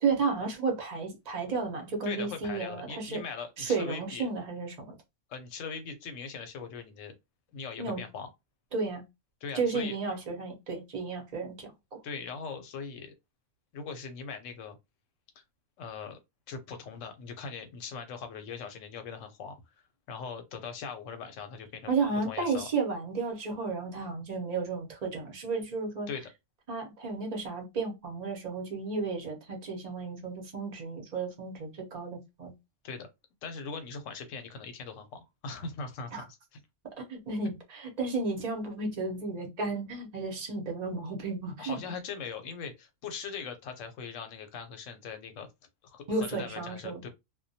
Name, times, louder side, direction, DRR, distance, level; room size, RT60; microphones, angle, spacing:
voice 1, 0.0-3.2 3.6-4.9 7.8-8.0 8.7-9.0 9.5-12.0 21.9-26.1 26.7-32.5 36.1-36.2 37.0-41.8 46.1-47.1, right 4 dB, 40° right, 0.7 m, -33 dB
voice 2, 2.0-4.3 5.3-7.1 7.5-8.3 9.4-10.0 12.0-13.1 13.7-14.8 15.8-16.2 16.5-19.6 20.1-21.9 22.3-22.7 26.1-26.3 32.8-33.1 33.4-36.4 41.6-45.5 45.8-47.1, left 5 dB, 90° left, 1.0 m, -40 dB
2.2 x 2.2 x 2.6 m
omnidirectional pair, 1.3 m